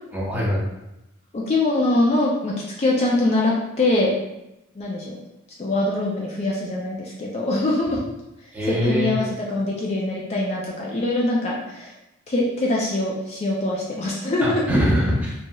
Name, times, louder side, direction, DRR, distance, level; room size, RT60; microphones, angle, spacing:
voice 1, 0.1-0.6 8.5-9.1 14.4-15.3, equal, 10° right, -6 dB, 0.7 m, -22 dB
voice 2, 1.3-2.5 2.8-4.1 4.8-5.1 5.6-8.0 8.6-11.9 12.3-14.6, left 2 dB, 30° left, -3 dB, 0.4 m, -23 dB
3.0 x 2.7 x 2.2 m, 0.90 s
head